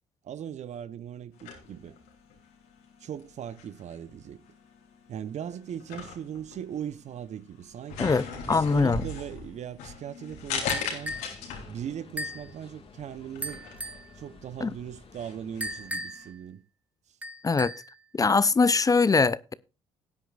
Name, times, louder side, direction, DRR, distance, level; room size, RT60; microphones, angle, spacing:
voice 1, 0.2-2.0 3.0-4.4 5.1-8.1 8.4-11.1 11.7-13.6 14.1-16.6, right 9 dB, 55° right, 0.8 m, -39 dB
sound 1, 1.3-16.3, left 5 dB, 80° left, 3.0 m, -40 dB
voice 2, 8.0-9.0 14.6-14.7 17.4-17.7 18.1-19.5, left 4 dB, 25° left, 0.6 m, -22 dB
sound 2, 10.4-15.9, left 3 dB, 40° left, 1.8 m, -52 dB
sound 3, 10.7-11.4 12.2-12.5 13.4-14.1 15.6-16.3 17.2-17.9, equal, 10° right, 1.5 m, -36 dB
17.5 x 9.2 x 2.4 m
hypercardioid pair, 60°, 14 cm